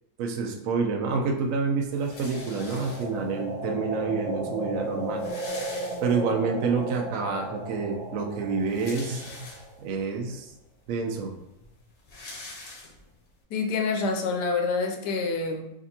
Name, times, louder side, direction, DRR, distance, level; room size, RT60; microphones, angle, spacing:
voice 1, 0.2-5.2 6.0-9.5 9.8-10.5 10.9-11.4, right 4 dB, 65° right, 3 dB, 0.9 m, -28 dB
sound 1, 1.9-3.4 4.2-4.3 4.5-4.6 4.9-6.5 6.9-7.0 8.4-10.0 10.6-10.7 11.0-13.3, left 2 dB, 55° left, 0.9 m, -44 dB
sound 2, 2.0-10.0, right 1 dB, 80° right, 1.7 m, -35 dB
voice 2, 13.5-15.7, left 4 dB, 85° left, 3 dB, 1.2 m, -27 dB
5.0 x 2.6 x 2.8 m, 0.88 s
omnidirectional pair, 1.7 m